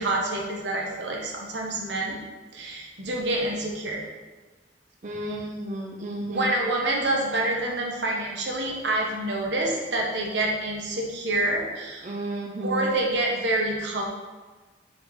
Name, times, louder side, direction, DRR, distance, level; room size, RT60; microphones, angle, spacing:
voice 1, 0.0-2.2 2.5-4.0 6.3-12.1 12.6-14.1, right 2 dB, 75° right, -1 dB, 1.2 m, -27 dB
voice 2, 5.0-6.6 12.0-12.9, right 1 dB, 45° right, -2 dB, 0.6 m, -32 dB
4.7 x 4.3 x 4.8 m, 1.3 s
head